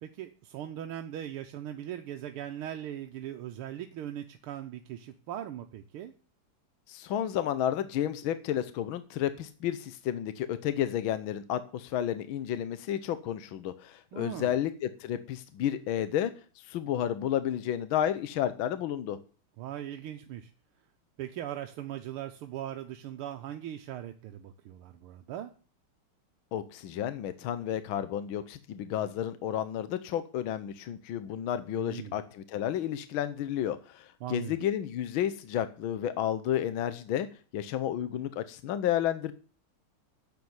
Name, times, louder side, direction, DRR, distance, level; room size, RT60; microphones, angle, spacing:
voice 1, 0.0-6.1 14.1-14.5 19.6-20.5 21.2-25.5 31.7-32.2 34.2-34.6, right 11 dB, 85° right, 6 dB, 1.8 m, -39 dB
voice 2, 6.9-16.3 16.6-19.2 26.5-37.3 37.5-39.3, left 10 dB, 70° left, 12 dB, 1.5 m, -31 dB
10.5 x 7.7 x 9.5 m, 0.40 s
omnidirectional pair, 2.4 m